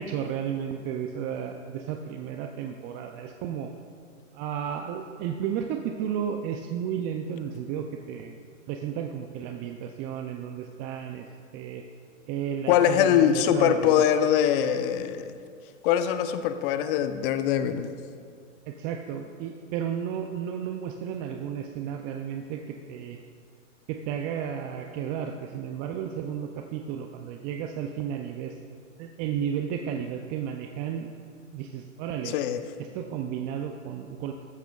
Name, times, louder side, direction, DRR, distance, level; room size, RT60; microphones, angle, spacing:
voice 1, 0.0-3.7 4.3-8.4 8.7-11.3 11.5-11.8 12.3-14.0 18.7-23.2 23.9-28.5 29.0-31.1 31.5-32.3 32.9-34.3, right 8 dB, 25° right, 4 dB, 0.4 m, -33 dB
voice 2, 12.7-15.4 15.8-17.9 32.2-32.6, left 10 dB, 45° left, 10 dB, 0.8 m, -23 dB
13.5 x 13.0 x 2.3 m, 2.3 s
hypercardioid pair, 115°, 38 cm